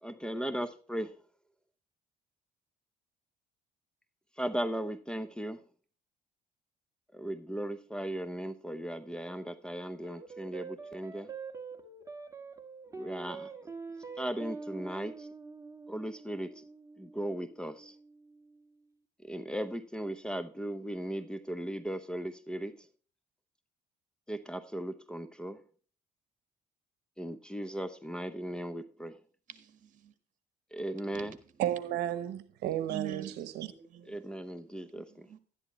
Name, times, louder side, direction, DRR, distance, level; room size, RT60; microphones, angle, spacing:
voice 1, 0.0-1.2 4.4-5.6 7.1-11.3 13.0-13.5 14.2-15.3 15.9-16.6 17.0-17.9 19.2-22.9 24.3-25.6 27.2-29.1 30.7-31.4 34.1-35.3, right 1 dB, 5° left, 0.7 m, -37 dB
sound 1, 10.0-18.7, right 4 dB, 20° right, 1.6 m, -45 dB
voice 2, 29.5-30.1 31.1-31.3 32.9-33.3 33.7-34.2 34.7-35.0 35.3-35.4, right 11 dB, 50° right, 1.7 m, -44 dB
voice 3, 31.6-33.7, right 12 dB, 80° right, 1.0 m, -33 dB
11.5 x 11.0 x 3.1 m
cardioid pair, 110°, 17 cm